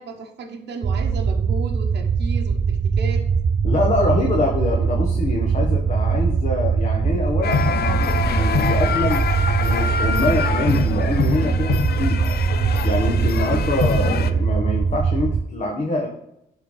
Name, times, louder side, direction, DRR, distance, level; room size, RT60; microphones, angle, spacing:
voice 1, 0.0-3.2, right 4 dB, 60° right, 1 dB, 1.0 m, -34 dB
sound 1, 0.8-15.4, right 5 dB, 30° right, 0.4 m, -21 dB
voice 2, 3.6-9.2 9.6-12.2 12.8-16.1, left 2 dB, 35° left, 0 dB, 1.1 m, -25 dB
sound 2, 7.4-14.3, left 6 dB, 55° left, 0.5 m, -24 dB
11.0 x 3.8 x 3.2 m, 0.81 s
cardioid pair, 90°, 20 cm